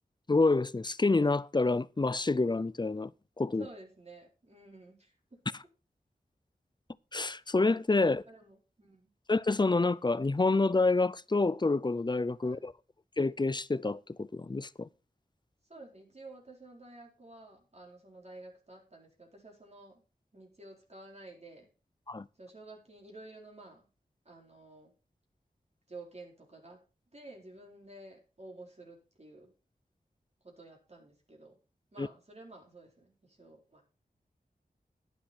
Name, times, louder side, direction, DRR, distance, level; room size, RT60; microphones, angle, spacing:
voice 1, 0.3-3.1 3.4-3.6 7.1-8.2 9.3-12.7 13.2-14.9 22.1-22.3 32.0-32.1, left 3 dB, 30° left, 0.5 m, -28 dB
voice 2, 3.6-5.4 8.0-9.1 12.4-12.7 15.7-20.0 20.3-21.7 22.3-23.9 24.2-24.9 25.9-26.8 27.1-29.5 30.4-31.6 31.9-33.8, right 2 dB, 45° right, 4.3 m, -51 dB
11.5 x 10.5 x 4.3 m
wide cardioid pair, 55°, 16 cm